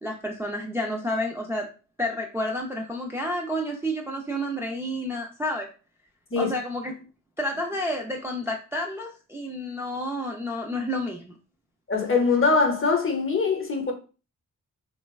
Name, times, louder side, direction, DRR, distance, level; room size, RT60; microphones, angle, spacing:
voice 1, 0.0-1.7 2.0-5.7 6.4-7.1 7.4-11.3, left 1 dB, 10° right, 0.3 m, -30 dB
voice 2, 11.9-13.9, left 4 dB, 40° left, 0.7 m, -22 dB
3.1 x 2.2 x 2.2 m
cardioid pair, 85°, 33 cm